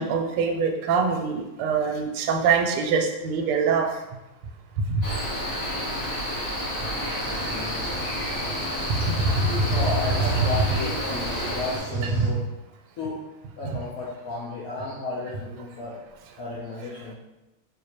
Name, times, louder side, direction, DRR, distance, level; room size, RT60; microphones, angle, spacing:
voice 1, 0.0-4.0 4.9-5.0 8.9-9.7 12.1-12.3, right 5 dB, 90° right, 3 dB, 1.5 m, -24 dB
Cricket, 5.0-11.8, equal, 55° left, 1.7 m, -30 dB
Cricket / Waves surf, 7.2-12.3, right 1 dB, 55° right, 1.0 m, -39 dB
voice 2, 7.4-7.8 9.7-12.4 13.0-13.2 13.6-16.0 16.4-17.1, left 2 dB, 70° left, -7 dB, 0.8 m, -33 dB
4.0 x 2.7 x 2.9 m, 0.98 s
omnidirectional pair, 2.4 m